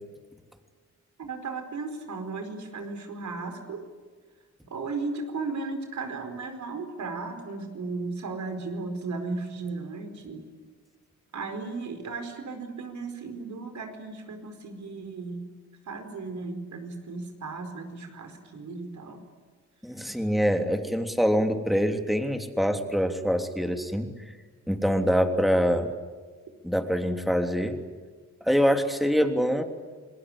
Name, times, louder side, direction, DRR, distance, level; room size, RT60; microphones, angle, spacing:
voice 1, 1.2-3.8 4.6-10.4 11.3-15.5 15.9-19.2 20.1-20.2, right 3 dB, 75° right, 6 dB, 4.7 m, -35 dB
voice 2, 19.8-24.1 24.7-25.9 26.6-27.8 28.4-29.6, equal, ahead, 5 dB, 3.2 m, -24 dB
28.0 x 20.0 x 10.0 m, 1.4 s
cardioid pair, 70°, 29 cm